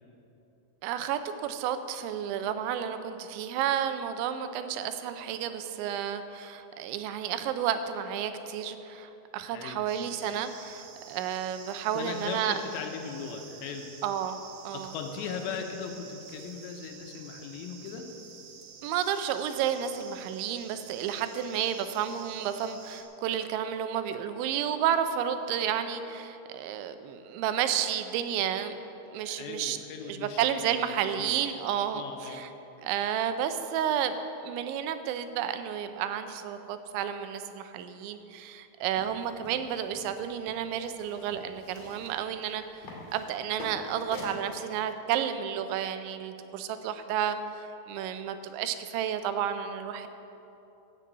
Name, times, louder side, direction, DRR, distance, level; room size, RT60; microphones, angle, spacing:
voice 1, 0.8-12.6 14.0-14.4 14.6-14.9 18.8-28.8 29.1-29.8 30.0-32.5 32.8-34.2 34.4-42.9 43.1-50.1, right 9 dB, 90° right, 9 dB, 3.1 m, -31 dB
voice 2, 9.5-9.8 11.9-13.9 14.7-18.1 29.2-30.4 30.6-31.4 31.9-32.5, left 6 dB, 80° left, 4 dB, 3.1 m, -38 dB
sound 1, 9.9-23.0, right 6 dB, 70° right, 2.1 m, -49 dB
sound 2, 38.9-44.4, left 2 dB, 45° left, 2.5 m, -46 dB
15.0 x 7.0 x 8.0 m, 3.0 s
omnidirectional pair, 5.2 m